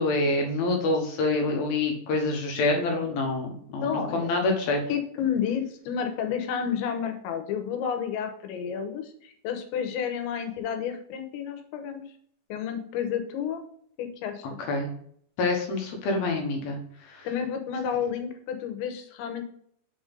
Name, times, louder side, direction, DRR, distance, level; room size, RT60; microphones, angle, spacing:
voice 1, 0.0-4.8 14.7-14.9 15.4-16.8 17.0-17.3, left 2 dB, 70° left, 2 dB, 2.7 m, -26 dB
voice 2, 3.8-4.3 4.9-12.0 12.5-13.6 14.0-14.5 17.2-19.4, left 8 dB, 90° left, 7 dB, 3.2 m, -30 dB
7.0 x 3.7 x 5.2 m, 0.63 s
omnidirectional pair, 5.0 m